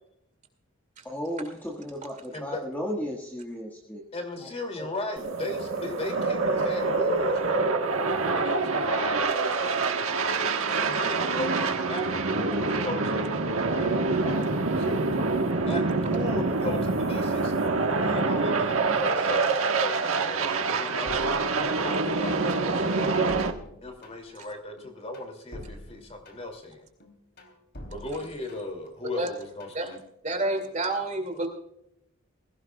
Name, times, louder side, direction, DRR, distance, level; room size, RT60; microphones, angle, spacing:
voice 1, 1.0-4.0 4.4-4.5 4.8-4.9, equal, 10° left, -1 dB, 1.6 m, -34 dB
voice 2, 2.3-2.6 4.1-7.7 8.3-9.2 10.7-13.4 13.7-15.0 15.7-17.5 17.9-23.2 23.8-26.9 27.9-30.0, left 2 dB, 30° left, 4 dB, 2.7 m, -36 dB
sound 1, 5.2-23.5, right 3 dB, 85° right, 1.4 m, -26 dB
sound 2, 21.1-22.2 22.5-24.4 24.8-26.6 27.0-28.9 29.2-29.8, left 1 dB, 55° left, 3.3 m, -46 dB
voice 3, 30.2-31.5, right 2 dB, 35° right, 5 dB, 2.5 m, -28 dB
21.0 x 16.5 x 2.3 m, 0.79 s
head